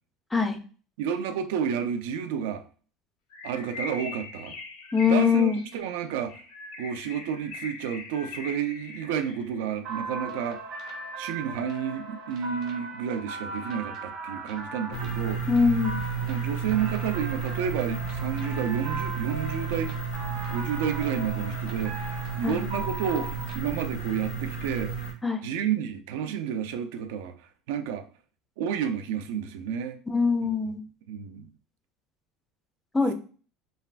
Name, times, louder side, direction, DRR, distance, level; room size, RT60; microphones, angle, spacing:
voice 1, 1.0-2.6 3.4-4.5 5.0-6.4 6.8-10.6 11.2-15.5 16.2-20.0 20.5-25.1 25.4-27.3 27.7-28.0 28.6-30.0 31.1-31.5, right 8 dB, 85° right, 0.4 m, -30 dB
Bird, 3.3-9.6, left 3 dB, 70° left, 0.6 m, -41 dB
voice 2, 4.9-5.6 15.5-16.0 22.4-22.6 25.2-25.4 30.1-30.8 32.9-33.1, left 5 dB, 10° left, 0.3 m, -22 dB
sound 1, 9.8-23.6, right 2 dB, 45° right, 0.9 m, -39 dB
sound 2, 14.9-25.1, right 5 dB, 90° left, 0.9 m, -32 dB
3.2 x 2.3 x 2.5 m
cardioid pair, 170°, 0 cm